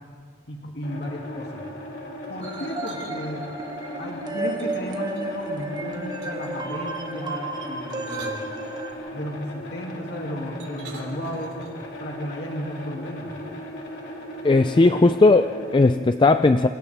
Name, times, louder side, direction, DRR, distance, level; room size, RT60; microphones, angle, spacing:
voice 1, 0.5-1.6 2.3-3.5 4.0-8.4 9.1-11.6 12.0-13.3, equal, 70° left, -1 dB, 2.6 m, -34 dB
sound 1, 0.8-15.8, left 1 dB, 85° left, 3.7 m, -38 dB
sound 2, 2.4-8.9, right 2 dB, 25° right, 1.5 m, -33 dB
sound 3, 2.4-3.1 4.6-5.5 6.2-6.6 7.7-9.1 10.6-11.9, right 3 dB, 80° right, 3.5 m, -47 dB
voice 2, 14.4-16.7, left 3 dB, 30° left, 10 dB, 0.4 m, -17 dB
27.5 x 27.0 x 3.5 m, 2.3 s
head